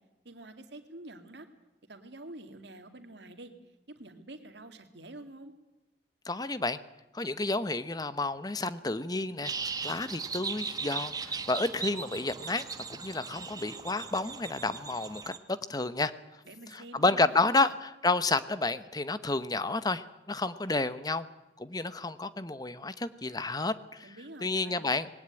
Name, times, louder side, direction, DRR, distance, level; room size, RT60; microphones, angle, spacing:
voice 1, 0.2-1.5 1.9-3.5 3.9-5.5 16.4-17.5 24.0-24.9, right 1 dB, 65° right, 7 dB, 2.3 m, -47 dB
voice 2, 6.3-6.8 7.1-9.5 9.8-12.6 12.9-15.2 15.5-16.1 16.7-21.3 21.6-24.1 24.4-25.1, left 3 dB, 20° left, 14 dB, 0.9 m, -30 dB
sound 1, 9.4-15.4, right 5 dB, 20° right, 1.2 m, -38 dB
20.0 x 17.5 x 9.0 m, 1.0 s
head